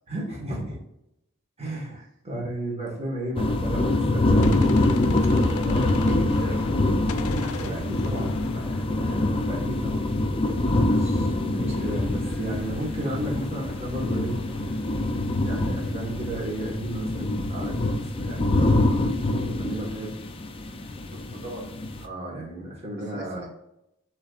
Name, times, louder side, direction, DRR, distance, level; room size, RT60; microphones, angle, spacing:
voice 1, 0.1-0.8 1.6-4.5 5.5-6.3 7.4-10.1 10.8-14.4 15.4-20.1 22.0-23.5, right 1 dB, 30° right, -3 dB, 1.5 m, -34 dB
sound 1, 3.4-22.1, left 2 dB, 25° left, 0.5 m, -25 dB
Gunshot gunfire, 4.4-6.8 7.1-9.8, left 5 dB, 80° left, 0.5 m, -40 dB
voice 2, 6.0-6.9 21.1-21.6 23.0-23.5, right 2 dB, 55° right, 0 dB, 1.4 m, -39 dB
sound 2, 11.7-19.2, equal, 5° left, 1.5 m, -45 dB
6.3 x 3.3 x 2.5 m, 0.83 s
head